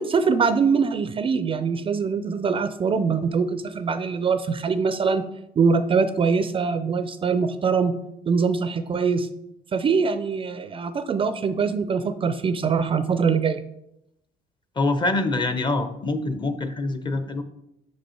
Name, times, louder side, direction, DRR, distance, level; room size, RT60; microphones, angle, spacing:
voice 1, 0.0-5.3 5.6-7.9 8.3-9.3 9.7-13.6, right 5 dB, 30° right, 11 dB, 0.4 m, -23 dB
voice 2, 14.8-17.4, left 2 dB, 25° left, 9 dB, 0.7 m, -25 dB
6.0 x 5.3 x 4.4 m, 0.83 s
cardioid pair, 110°, 17 cm